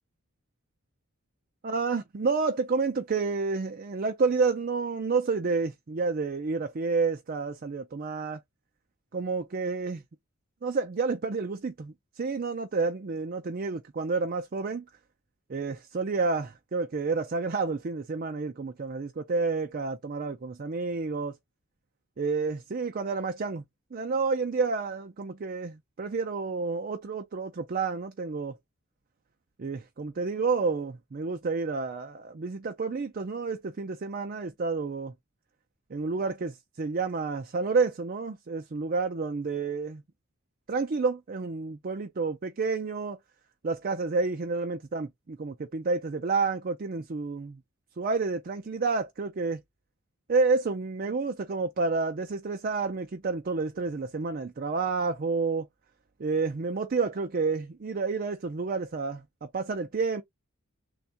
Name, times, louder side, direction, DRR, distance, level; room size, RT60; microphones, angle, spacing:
voice 1, 1.6-8.4 9.1-10.0 10.6-14.8 15.5-21.3 22.2-23.6 23.9-28.6 29.6-35.1 35.9-40.0 40.7-43.2 43.6-47.6 48.0-49.6 50.3-55.7 56.2-60.2, right 4 dB, 40° right, 0.4 m, -30 dB
3.5 x 2.3 x 4.1 m
head